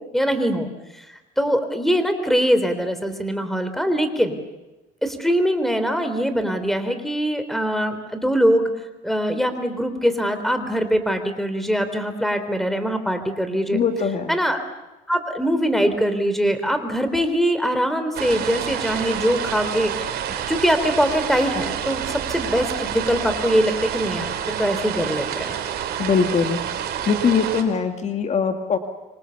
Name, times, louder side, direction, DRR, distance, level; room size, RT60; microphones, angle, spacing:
voice 1, 0.1-4.4 5.0-8.7 9.0-13.8 14.3-14.6 15.1-25.5, equal, ahead, 9 dB, 3.6 m, -22 dB
voice 2, 13.7-14.3 26.0-26.6 27.1-28.8, left 5 dB, 40° left, 6 dB, 2.1 m, -21 dB
sound 1, 18.1-27.6, right 9 dB, 70° right, 3.8 m, -28 dB
25.5 x 25.5 x 7.1 m, 1.1 s
cardioid pair, 110°, 17 cm